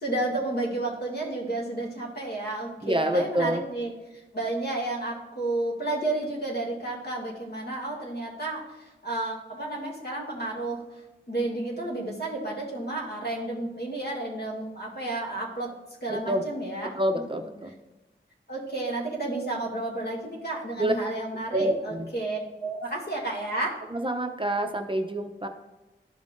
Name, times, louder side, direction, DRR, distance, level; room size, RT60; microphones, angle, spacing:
voice 1, 0.0-3.9 4.3-10.8 11.3-15.7 16.0-17.5 18.5-23.8, right 2 dB, 55° left, -2 dB, 2.3 m, -31 dB
voice 2, 2.8-3.6 16.1-16.4 17.0-17.7 20.8-20.9 21.5-21.8 23.9-25.5, right 1 dB, 25° right, 4 dB, 0.6 m, -27 dB
12.5 x 5.4 x 2.6 m, 1.1 s
wide cardioid pair, 85°, 20 cm